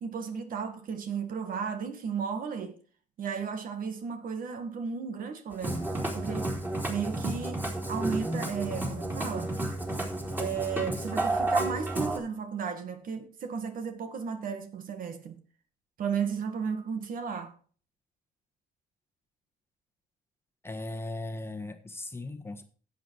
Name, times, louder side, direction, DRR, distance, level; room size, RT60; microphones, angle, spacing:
voice 1, 0.0-2.8 3.2-5.9 6.1-6.6 6.9-9.6 10.4-15.4 16.0-17.5, right 6 dB, 55° right, 1.8 m, -34 dB
Musical instrument, 5.5-12.2, right 2 dB, 10° right, 3.7 m, -31 dB
voice 2, 20.6-22.6, left 2 dB, 15° left, 1.4 m, -38 dB
11.0 x 8.2 x 4.7 m
cardioid pair, 110°, 17 cm